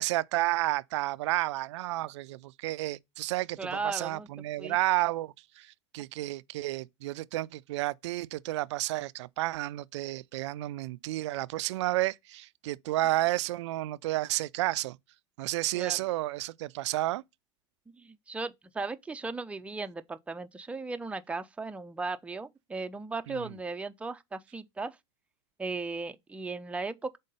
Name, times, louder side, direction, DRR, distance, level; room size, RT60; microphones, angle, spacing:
voice 1, 0.0-15.0 15.4-17.2 23.3-23.5, right 17 dB, 70° right, 0.4 m, -31 dB
voice 2, 3.6-4.3 4.6-4.8 15.7-16.0 17.9-25.0 25.6-27.2, right 3 dB, 10° right, 0.5 m, -37 dB
5.4 x 3.8 x 5.3 m
hypercardioid pair, 95°, 16 cm